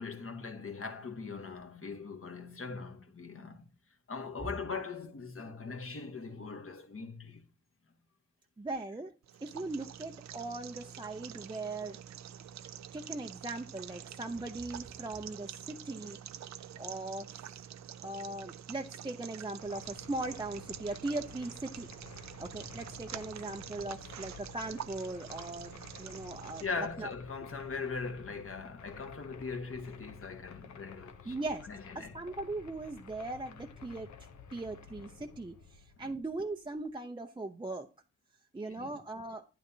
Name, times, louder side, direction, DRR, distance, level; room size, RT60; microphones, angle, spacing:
voice 1, 0.0-3.6 4.1-7.4 26.6-31.3 31.7-32.1 36.0-36.1 38.7-38.9, left 4 dB, 45° left, 1.5 m, -40 dB
voice 2, 8.6-9.1 9.4-12.0 12.9-16.2 16.8-17.5 18.0-21.9 22.4-27.1 31.2-31.7 31.9-34.1 34.5-37.9 38.5-39.4, right 2 dB, 15° right, 0.7 m, -39 dB
sound 1, 9.2-26.7, right 9 dB, 60° right, 0.5 m, -47 dB
sound 2, 19.6-36.9, left 6 dB, 65° left, 0.9 m, -52 dB
9.8 x 8.9 x 2.8 m
supercardioid pair, 50°, 31 cm